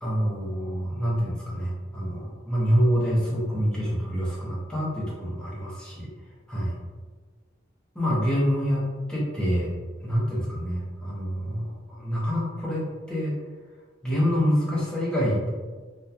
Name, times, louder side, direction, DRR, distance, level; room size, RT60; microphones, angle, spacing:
voice 1, 0.0-6.1 6.5-6.7 7.9-8.8 9.1-9.7 10.0-13.3 14.0-15.5, equal, 5° left, -7 dB, 0.6 m, -26 dB
2.8 x 2.2 x 2.3 m, 1.4 s
head